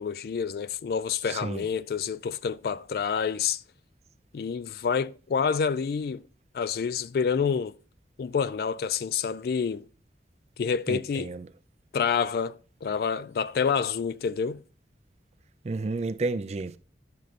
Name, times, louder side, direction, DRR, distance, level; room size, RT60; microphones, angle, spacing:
voice 1, 0.0-3.6 4.3-6.2 6.5-7.8 8.2-9.9 10.6-11.3 11.9-14.6, left 6 dB, 55° left, 0.3 m, -28 dB
voice 2, 1.3-1.7 10.9-11.5 15.6-16.8, right 3 dB, 35° right, 0.4 m, -31 dB
10.5 x 6.5 x 2.5 m
head